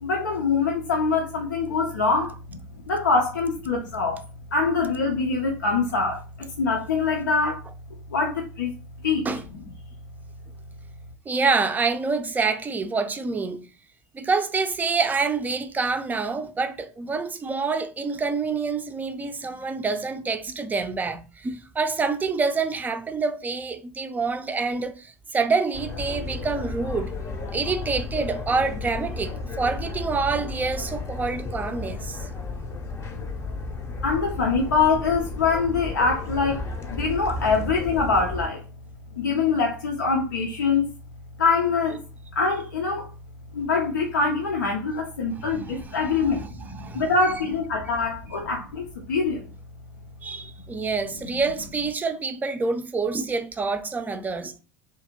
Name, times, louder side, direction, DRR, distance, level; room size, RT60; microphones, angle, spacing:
voice 1, 0.0-2.6 2.9-4.2 4.5-7.6 8.1-8.7 9.0-9.3 34.0-36.6 36.9-38.6 39.2-40.9 41.4-42.0 42.3-43.1 43.5-49.5, left 4 dB, 80° left, 0.5 m, -24 dB
voice 2, 11.3-13.6 14.1-27.1 27.5-32.3 45.4-45.5 46.1-47.1 50.2-54.6, right 4 dB, 15° right, 0.4 m, -27 dB
sound 1, 25.7-38.5, left 3 dB, 25° left, 0.7 m, -33 dB
2.7 x 2.5 x 2.8 m
hypercardioid pair, 85°, 10 cm